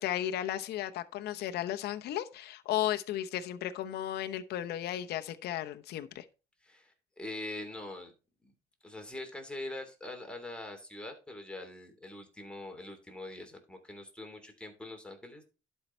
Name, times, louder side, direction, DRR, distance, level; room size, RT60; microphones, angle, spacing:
voice 1, 0.0-6.2, left 12 dB, 70° left, 0.9 m, -34 dB
voice 2, 6.6-8.1 8.4-8.5 8.8-15.4, left 1 dB, 5° left, 2.9 m, -43 dB
11.5 x 5.6 x 4.5 m
cardioid pair, 110°, 17 cm